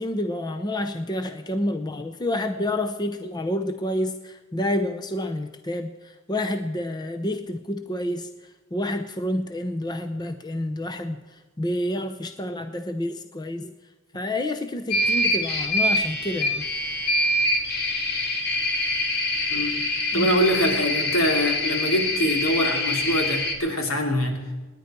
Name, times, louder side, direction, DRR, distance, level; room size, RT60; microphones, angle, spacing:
voice 1, 0.0-5.9 6.3-8.3 8.7-11.2 11.6-13.7 14.1-16.6 20.1-20.3, left 1 dB, 20° left, 7 dB, 0.7 m, -28 dB
sound 1, 14.9-23.5, left 1 dB, 50° left, 2.3 m, -25 dB
voice 2, 19.5-19.9 20.1-24.6, equal, 75° left, 2 dB, 3.1 m, -24 dB
27.5 x 10.5 x 4.5 m, 1.3 s
head